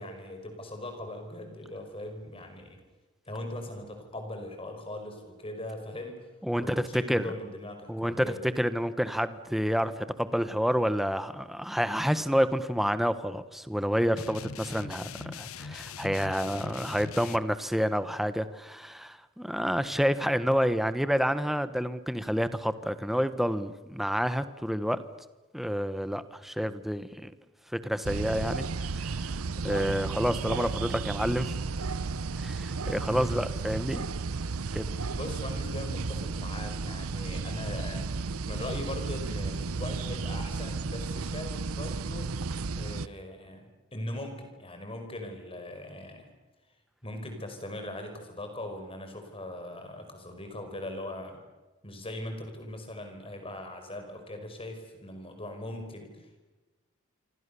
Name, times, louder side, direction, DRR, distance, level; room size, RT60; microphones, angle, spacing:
voice 1, 0.0-2.8 3.3-6.3 6.6-8.4 33.0-33.4 35.1-38.0 38.5-42.3 42.8-46.3 47.0-51.4 51.8-56.4, left 1 dB, 25° left, 5 dB, 5.3 m, -40 dB
voice 2, 6.4-7.3 7.9-8.2 8.6-25.0 25.5-27.3 27.7-28.7 28.9-29.3 29.6-31.6 32.4-34.0 34.7-34.9, equal, ahead, 12 dB, 1.1 m, -29 dB
sound 1, 14.2-17.4, left 6 dB, 80° left, 0.9 m, -41 dB
sound 2, 28.0-43.1, right 4 dB, 90° right, 0.8 m, -33 dB
27.5 x 25.5 x 7.0 m, 1.2 s
head